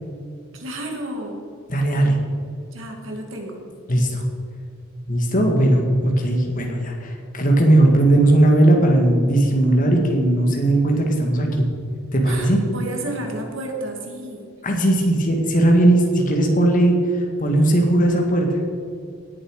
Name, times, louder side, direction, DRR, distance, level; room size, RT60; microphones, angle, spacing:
voice 1, 0.5-1.4 2.7-3.6 12.3-14.5, right 1 dB, 65° right, 2 dB, 2.2 m, -31 dB
voice 2, 1.7-2.2 3.9-4.2 5.1-11.7 12.1-12.6 14.6-17.0 17.4-18.6, right 1 dB, 40° left, 1 dB, 2.1 m, -17 dB
18.0 x 7.4 x 4.9 m, 2.4 s
head